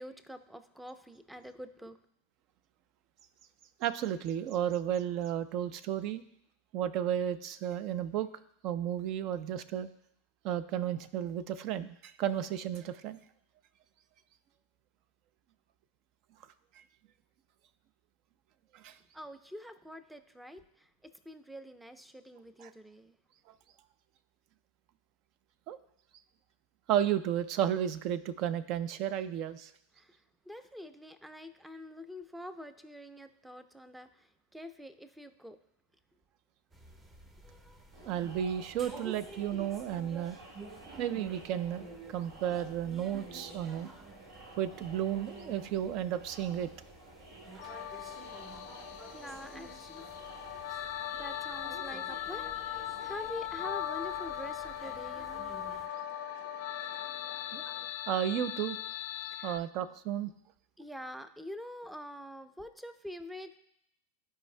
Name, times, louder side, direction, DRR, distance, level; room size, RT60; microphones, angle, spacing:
voice 1, 0.0-2.0 18.9-23.2 29.9-35.6 48.8-50.1 51.1-55.5 59.3-59.6 60.8-63.6, left 1 dB, 5° right, 10 dB, 0.6 m, -46 dB
voice 2, 3.8-6.2 6.7-8.3 8.6-9.9 10.4-13.2 18.7-19.0 22.6-22.7 25.7-25.8 26.9-29.7 38.1-40.4 41.0-43.9 44.6-46.7 57.5-57.7 58.1-58.8 59.4-60.3, right 10 dB, 50° right, 14 dB, 0.5 m, -33 dB
sound 1, 36.7-55.9, right 3 dB, 25° right, 1.1 m, -51 dB
Crowd, 37.9-57.9, right 2 dB, 70° right, 1.6 m, -54 dB
sound 2, 47.6-59.6, left 11 dB, 65° left, 0.4 m, -39 dB
13.5 x 4.7 x 2.2 m, 0.76 s
hypercardioid pair, 105°, 0 cm